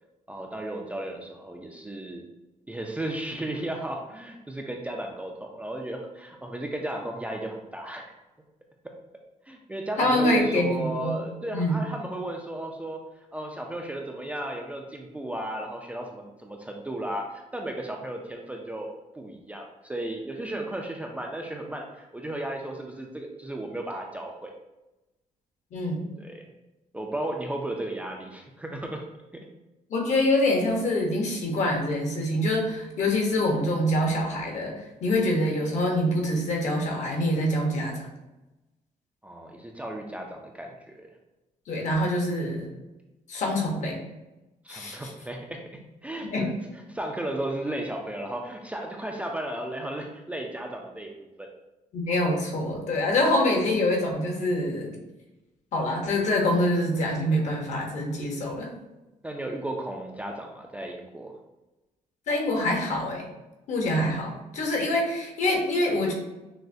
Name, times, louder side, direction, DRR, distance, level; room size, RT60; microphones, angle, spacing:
voice 1, 0.3-2.2 2.7-8.1 9.5-13.0 13.3-18.9 19.2-24.5 26.2-26.5 26.9-29.0 39.2-41.1 44.6-45.6 46.0-51.5 59.2-61.3, right 1 dB, 10° right, 1 dB, 0.3 m, -34 dB
voice 2, 10.0-11.2 11.5-11.8 25.7-26.0 29.9-34.7 35.0-38.1 41.7-42.7 43.3-44.0 44.7-45.1 46.2-46.5 51.9-54.9 55.7-58.7 62.3-63.3 63.7-66.1, left 1 dB, 60° left, 1 dB, 0.9 m, -25 dB
6.1 x 2.1 x 2.6 m, 1.0 s
cardioid pair, 140°, 14 cm